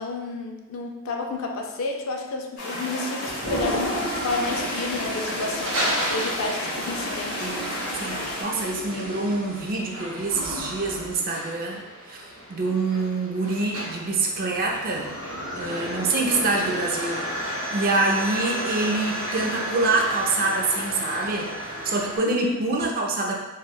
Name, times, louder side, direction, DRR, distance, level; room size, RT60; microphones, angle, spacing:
voice 1, 0.0-5.8 6.1-7.5 22.2-22.6, left 3 dB, 65° left, 1 dB, 0.4 m, -31 dB
sound 1, 2.6-8.4, left 1 dB, 85° left, 0.8 m, -32 dB
Toilet flush, 3.3-11.1, equal, 5° left, 0.5 m, -34 dB
sound 2, 5.2-22.2, right 1 dB, 75° right, 0.8 m, -33 dB
voice 2, 7.4-15.1 15.5-23.4, right 3 dB, 40° right, -1 dB, 0.4 m, -26 dB
3.2 x 2.2 x 2.2 m, 1.1 s
head